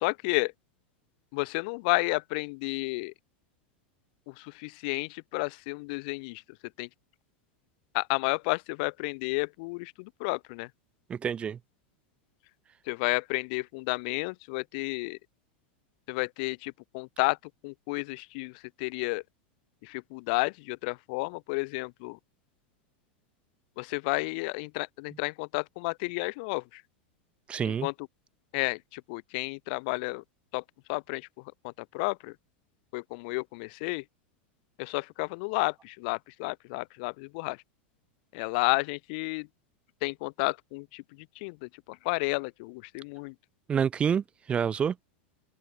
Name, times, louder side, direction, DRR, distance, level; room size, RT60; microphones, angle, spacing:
voice 1, 0.0-0.5 1.3-3.1 4.3-6.4 6.8-6.9 7.9-10.7 12.9-15.2 16.1-17.4 17.6-18.5 18.8-19.2 19.8-22.2 23.8-26.8 27.7-27.9 28.5-30.2 30.5-30.6 30.9-31.3 31.6-32.3 32.9-34.0 34.8-37.6 38.3-39.5 40.0-41.0 41.4-43.3, left 29 dB, 55° left, 0.7 m, -31 dB
voice 2, 11.1-11.6 27.5-27.9 43.7-45.0, right 7 dB, 20° right, 0.8 m, -28 dB
open air
supercardioid pair, 150°, 6 cm